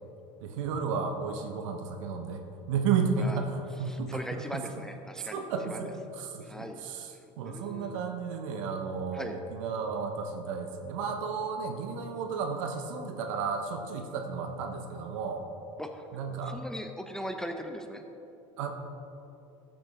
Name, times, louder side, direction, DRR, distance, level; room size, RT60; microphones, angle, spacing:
voice 1, 0.4-2.4 2.7-4.4 5.2-7.1 7.4-15.4 16.1-16.6 18.6-18.7, right 5 dB, 75° right, 5 dB, 1.1 m, -33 dB
voice 2, 3.9-5.9 6.4-6.8 7.4-8.0 9.1-9.4 15.8-18.0, equal, 5° left, 5 dB, 0.9 m, -40 dB
13.5 x 7.4 x 3.7 m, 2.8 s
hypercardioid pair, 80°, 16 cm